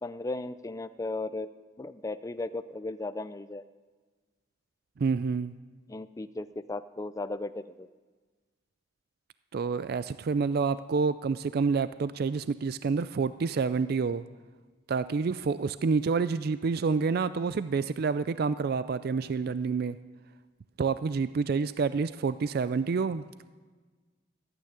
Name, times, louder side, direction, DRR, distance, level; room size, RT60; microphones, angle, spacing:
voice 1, 0.0-1.5 1.8-3.6 5.9-7.9, left 2 dB, 15° left, 12 dB, 0.4 m, -36 dB
voice 2, 5.0-5.5 9.5-14.2 14.9-20.0 20.8-23.5, right 5 dB, 55° right, 14 dB, 0.4 m, -28 dB
15.0 x 9.1 x 9.3 m, 1.4 s
head